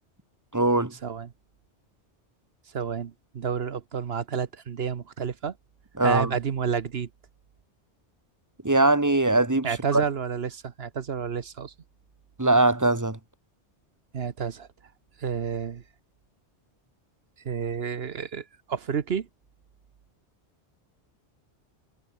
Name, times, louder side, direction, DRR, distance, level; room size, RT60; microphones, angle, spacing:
voice 1, 0.5-0.9 6.0-6.3 8.6-9.7 9.9-10.0 12.4-13.2, right 2 dB, 15° right, 1.4 m, -21 dB
voice 2, 2.7-5.5 6.0-7.1 9.6-11.7 14.1-14.7 15.2-15.8 17.4-19.3, right 7 dB, 65° right, 1.2 m, -30 dB
omnidirectional pair, 1.2 m